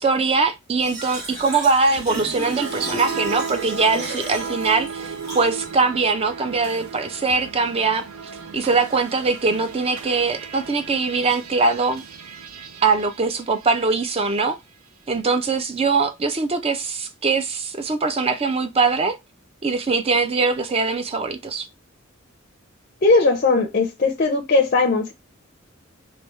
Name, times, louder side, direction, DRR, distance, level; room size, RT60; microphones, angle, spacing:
voice 1, 0.0-8.0 8.5-12.0 12.8-14.6 15.1-19.2 19.6-21.7, right 4 dB, 30° right, 0.4 m, -22 dB
Fill (with liquid), 0.8-5.8, right 2 dB, 50° right, 1.4 m, -34 dB
sound 1, 2.0-14.3, right 6 dB, 90° right, 0.4 m, -35 dB
voice 2, 23.0-25.1, left 3 dB, 40° left, 0.5 m, -18 dB
3.4 x 2.7 x 3.0 m
head